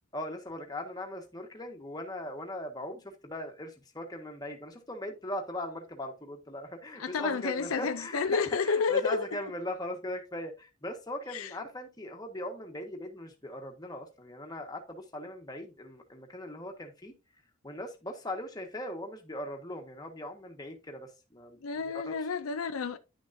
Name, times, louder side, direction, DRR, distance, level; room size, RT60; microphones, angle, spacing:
voice 1, 0.1-17.1 17.6-22.1, left 1 dB, 20° left, 1.5 m, -39 dB
voice 2, 7.0-9.3 11.3-11.5 21.6-23.0, left 5 dB, 75° left, 0.5 m, -30 dB
10.5 x 6.3 x 2.7 m
head